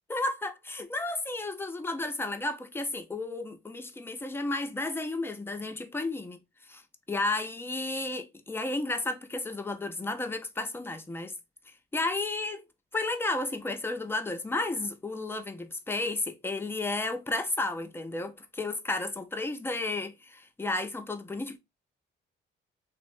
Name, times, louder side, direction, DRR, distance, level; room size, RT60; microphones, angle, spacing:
voice 1, 0.1-6.4 6.7-6.8 7.1-11.3 11.9-12.6 12.9-21.6, left 2 dB, 10° left, 0.4 m, -32 dB
2.8 x 2.0 x 2.6 m
cardioid pair, 90°, 20 cm